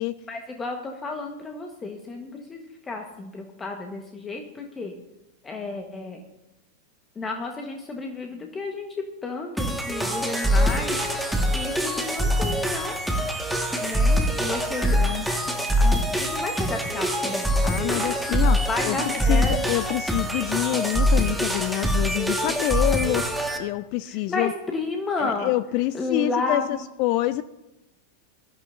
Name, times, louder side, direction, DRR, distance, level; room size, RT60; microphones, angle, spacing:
voice 1, 0.3-4.9 5.4-6.2 7.1-11.0 11.5-13.0 13.8-15.4 15.8-17.6 18.0-19.6 24.1-25.5 25.9-26.8, left 3 dB, 15° left, 3 dB, 1.3 m, -32 dB
sound 1, 9.6-23.6, equal, ahead, 1.7 m, -24 dB
voice 2, 17.6-19.0 19.3-24.5 25.2-27.4, left 16 dB, 45° left, 15 dB, 0.4 m, -27 dB
21.0 x 12.5 x 2.7 m, 0.98 s
figure-of-eight pair, 90°, 0 cm